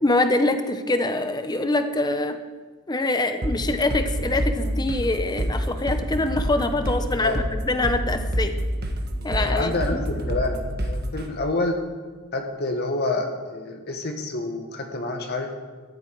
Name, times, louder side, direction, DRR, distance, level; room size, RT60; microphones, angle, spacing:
voice 1, 0.0-2.4 2.9-8.5 9.2-10.0, left 2 dB, 20° left, 8 dB, 0.9 m, -24 dB
sound 1, 3.4-11.3, equal, 50° right, 1.5 m, -27 dB
voice 2, 9.3-11.8 12.3-15.5, left 2 dB, 50° left, 3 dB, 1.5 m, -28 dB
14.0 x 12.5 x 4.7 m, 1.4 s
head